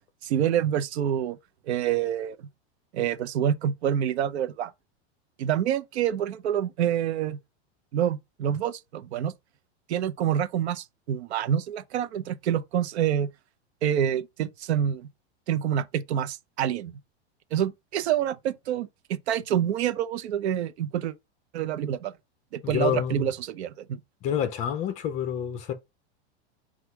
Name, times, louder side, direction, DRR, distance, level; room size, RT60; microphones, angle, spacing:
voice 1, 0.2-1.4 1.7-2.4 2.9-4.7 5.4-7.4 7.9-9.3 9.9-13.3 13.8-15.1 15.5-17.0 17.5-21.1 21.5-22.1 22.5-24.0, right 10 dB, 90° right, 0.7 m, -27 dB
voice 2, 22.6-23.3 24.2-25.7, left 9 dB, 20° left, 0.5 m, -28 dB
6.1 x 2.4 x 3.3 m
supercardioid pair, 165°, 32 cm